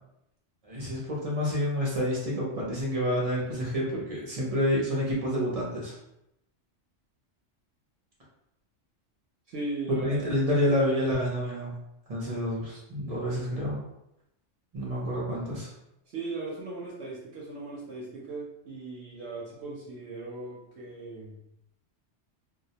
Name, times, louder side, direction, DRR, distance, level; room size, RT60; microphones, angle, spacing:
voice 1, 0.6-6.0 9.9-11.8 12.1-13.8 14.7-15.7, equal, 45° right, -5 dB, 0.5 m, -28 dB
voice 2, 9.5-10.2 16.1-21.4, right 3 dB, 65° right, -5 dB, 0.8 m, -38 dB
2.3 x 2.0 x 2.7 m, 0.83 s
omnidirectional pair, 1.3 m